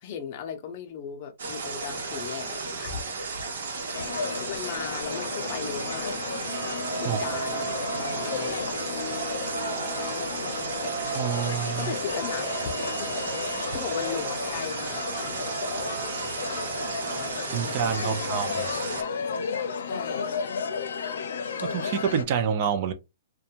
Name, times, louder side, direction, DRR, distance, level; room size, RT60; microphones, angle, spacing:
voice 1, 0.0-3.0 3.9-4.0 4.3-6.2 7.0-7.7 8.0-8.9 10.1-10.6 11.8-15.5 16.0-16.2 16.9-18.4 19.8-20.3, left 7 dB, 40° left, 0.6 m, -38 dB
sound 1, 1.4-19.0, right 4 dB, 80° right, 0.9 m, -34 dB
sound 2, 3.9-22.2, left 5 dB, 85° left, 0.6 m, -33 dB
sound 3, 6.5-17.9, right 7 dB, 55° right, 1.0 m, -39 dB
voice 2, 11.1-11.9 17.5-18.5 21.6-22.9, right 8 dB, 40° right, 0.4 m, -27 dB
2.5 x 2.2 x 2.8 m
hypercardioid pair, 160°, 0 cm